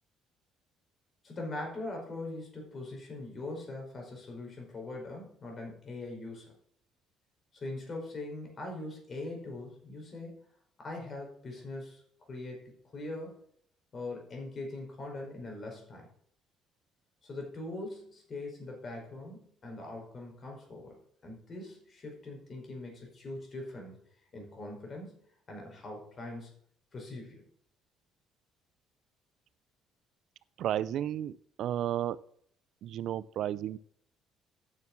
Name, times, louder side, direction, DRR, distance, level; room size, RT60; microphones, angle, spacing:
voice 1, 1.2-6.5 7.5-10.3 10.8-12.0 12.3-13.3 13.9-16.1 17.2-20.9 21.2-24.0 24.3-25.2 25.5-26.5 26.9-27.4, left 2 dB, 40° left, 1 dB, 5.0 m, -42 dB
voice 2, 30.6-32.2 32.8-33.8, right 11 dB, 65° right, 18 dB, 0.5 m, -33 dB
9.8 x 7.0 x 6.0 m, 0.63 s
cardioid pair, 100°, 0 cm